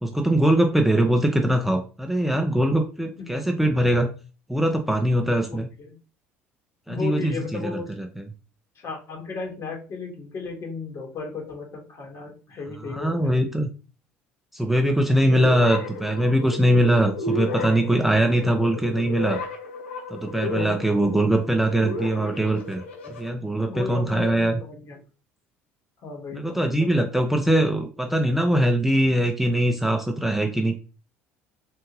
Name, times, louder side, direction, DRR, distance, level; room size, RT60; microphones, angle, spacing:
voice 1, 0.0-4.1 4.5-5.7 6.9-7.7 8.0-8.2 12.9-13.7 14.5-19.4 20.1-22.8 23.2-24.5 26.3-30.8, right 1 dB, 5° right, 3 dB, 0.5 m, -22 dB
voice 2, 5.5-5.9 6.9-8.0 8.7-13.4 20.5-20.8 23.6-25.0 26.0-26.9, left 4 dB, 50° left, 0 dB, 1.6 m, -35 dB
sound 1, 15.3-23.3, left 3 dB, 90° left, 0.8 m, -33 dB
3.5 x 2.7 x 3.0 m, 0.35 s
hypercardioid pair, 65°, 6 cm